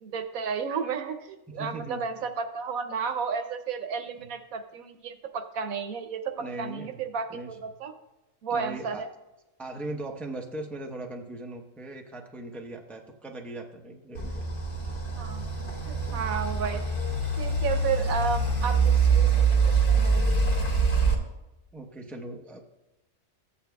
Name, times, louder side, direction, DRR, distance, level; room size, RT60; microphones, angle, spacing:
voice 1, 0.0-7.9 8.4-9.1 15.2-15.5 15.9-16.8 17.4-20.4, right 6 dB, 80° right, 8 dB, 1.2 m, -32 dB
voice 2, 1.5-2.0 4.2-4.3 6.4-7.0 7.3-7.5 8.5-9.0 9.6-14.5 16.0-16.3 21.7-22.6, right 2 dB, ahead, 2 dB, 0.6 m, -39 dB
sound 1, 14.1-21.1, right 4 dB, 40° left, 1.9 m, -24 dB
14.5 x 8.6 x 2.3 m, 1.0 s
omnidirectional pair, 1.4 m